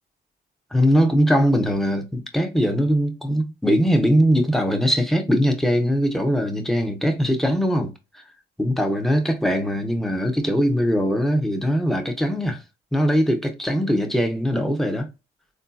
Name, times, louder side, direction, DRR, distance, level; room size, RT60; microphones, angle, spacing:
voice 1, 0.7-8.2 8.6-12.6 12.9-15.1, equal, ahead, 0.8 m, -21 dB
3.7 x 2.6 x 2.3 m
cardioid pair, 90°, 20 cm